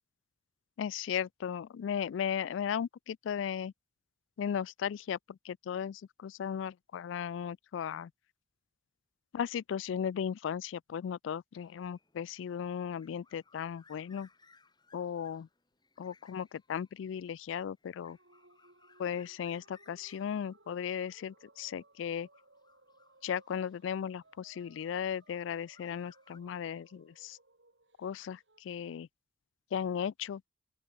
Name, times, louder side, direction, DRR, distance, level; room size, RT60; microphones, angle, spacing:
voice 1, 0.8-3.7 4.4-8.1 9.3-14.3 14.9-15.5 16.0-18.2 19.0-22.3 23.2-27.4 28.0-29.1 29.7-30.4, left 8 dB, 80° left, 0.3 m, -36 dB
sound 1, 11.5-24.4 25.1-26.4, left 4 dB, 25° left, 7.3 m, -66 dB
sound 2, 18.1-28.6, right 2 dB, 70° right, 7.4 m, -64 dB
open air
head